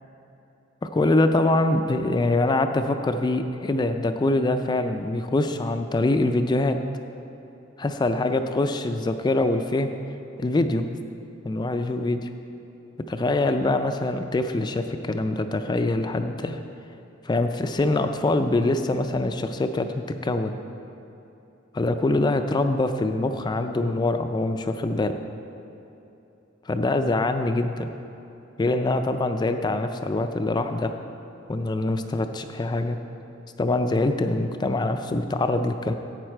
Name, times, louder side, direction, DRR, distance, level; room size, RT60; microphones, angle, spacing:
voice 1, 0.8-6.8 7.8-9.9 10.4-10.8 11.4-12.3 13.1-16.6 17.2-20.5 21.7-25.1 26.7-27.9 28.6-30.9 31.5-33.0 33.6-35.9, left 2 dB, 20° left, 7 dB, 0.3 m, -24 dB
11.0 x 8.1 x 4.5 m, 2.9 s
head